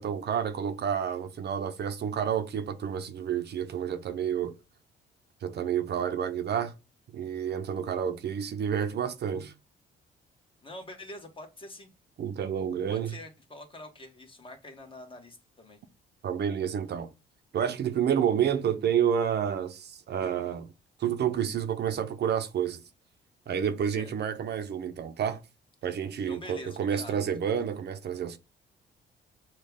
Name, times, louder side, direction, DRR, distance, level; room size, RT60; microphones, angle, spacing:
voice 1, 0.0-4.5 5.4-6.7 7.1-9.5 12.2-13.2 16.2-17.1 17.5-20.7 21.0-22.8 23.5-25.4 25.8-28.4, right 8 dB, 55° right, 0.7 m, -29 dB
voice 2, 10.6-11.9 12.9-15.8 23.9-24.1 26.3-27.1, left 1 dB, 25° left, 1.3 m, -45 dB
6.4 x 2.3 x 3.5 m
cardioid pair, 90°, 20 cm